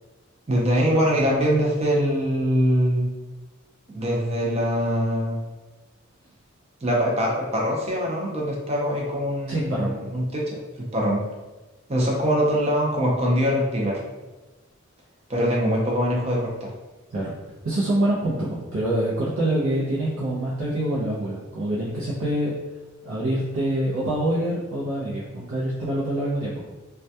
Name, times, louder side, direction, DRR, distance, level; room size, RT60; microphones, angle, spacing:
voice 1, 0.5-3.1 3.9-5.4 6.8-10.6 10.9-11.2 11.9-14.0 15.3-16.7, equal, 30° right, -3 dB, 0.5 m, -23 dB
voice 2, 9.5-10.0 17.1-17.3 17.6-22.5 23.0-26.6, right 1 dB, 80° right, -7 dB, 0.5 m, -25 dB
2.2 x 2.2 x 2.7 m, 1.2 s
head